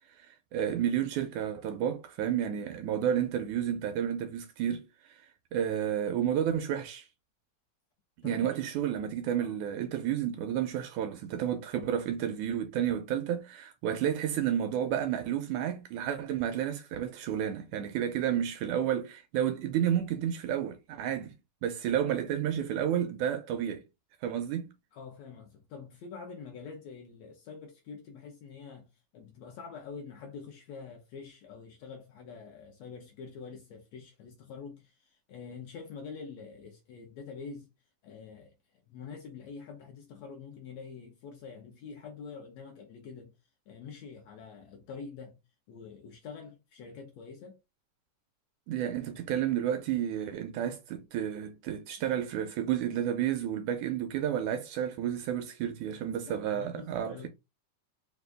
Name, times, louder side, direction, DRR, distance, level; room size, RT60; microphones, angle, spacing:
voice 1, 0.2-4.9 5.5-7.1 8.2-21.3 21.6-23.9 24.2-24.7 48.7-57.3, right 10 dB, 80° right, 1.8 m, -31 dB
voice 2, 8.2-8.6 9.4-9.6 24.9-37.7 38.0-38.5 38.9-43.3 43.7-45.4 45.7-47.6 56.3-57.3, left 5 dB, 70° left, 1.7 m, -46 dB
5.1 x 2.3 x 3.3 m
omnidirectional pair, 3.7 m